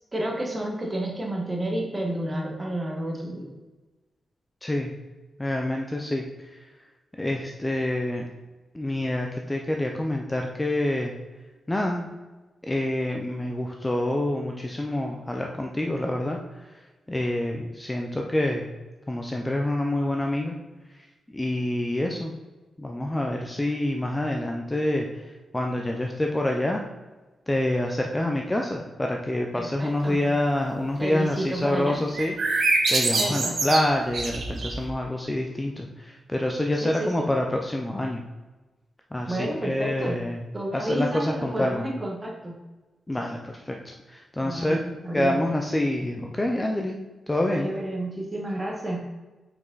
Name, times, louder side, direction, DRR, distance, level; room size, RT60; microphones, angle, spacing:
voice 1, 0.1-3.5 29.5-30.2 30.9-32.0 33.2-33.6 36.8-37.3 39.3-40.2 40.5-42.5 44.4-44.8 45.0-45.4 47.5-49.0, right 1 dB, 20° right, 0 dB, 1.4 m, -30 dB
voice 2, 4.6-4.9 5.4-6.7 7.2-8.3 8.7-11.1 11.7-12.1 12.6-16.7 17.1-18.7 19.1-20.5 20.9-22.3 22.8-26.8 27.5-38.2 39.1-40.4 40.7-41.8 43.1-44.8 45.1-47.0 47.3-47.7, left 1 dB, 10° left, 1 dB, 0.5 m, -27 dB
sound 1, 32.1-34.9, right 3 dB, 60° right, 1.4 m, -25 dB
6.0 x 5.2 x 3.9 m, 1.2 s
wide cardioid pair, 140°, 0 cm